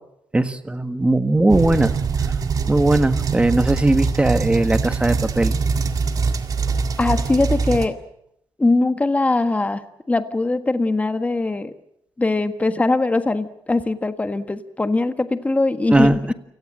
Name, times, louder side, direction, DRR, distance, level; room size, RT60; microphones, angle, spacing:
voice 1, 0.3-2.0 2.7-5.6 15.9-16.3, right 2 dB, 15° right, 10 dB, 1.6 m, -18 dB
sound 1, 1.5-7.9, right 5 dB, 45° right, 1.9 m, -23 dB
voice 2, 7.0-8.0 8.6-11.7 12.2-16.2, left 2 dB, 15° left, 9 dB, 1.5 m, -21 dB
29.5 x 18.0 x 7.6 m, 0.78 s
cardioid pair, 110°, 8 cm